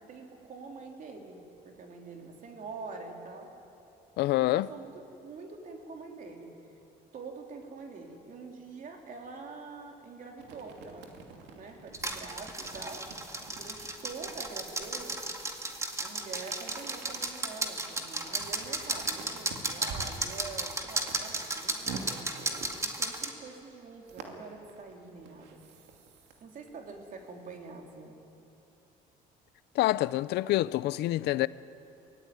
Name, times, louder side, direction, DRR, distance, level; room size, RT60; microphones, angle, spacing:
voice 1, 0.0-3.5 4.3-4.9 5.2-6.5 7.1-11.2 11.5-13.1 13.5-15.2 16.0-22.3 22.7-25.6 26.4-28.2, right 4 dB, 50° right, 3.5 m, -45 dB
voice 2, 4.2-4.7 29.7-31.5, left 16 dB, 80° left, 0.6 m, -26 dB
sound 1, 10.4-15.3 16.3-23.4 24.0-26.4 26.7-28.0, right 4 dB, 85° right, 2.7 m, -47 dB
sound 2, 11.9-23.3, right 2 dB, 15° right, 2.1 m, -35 dB
23.5 x 17.0 x 9.4 m
cardioid pair, 110°, 17 cm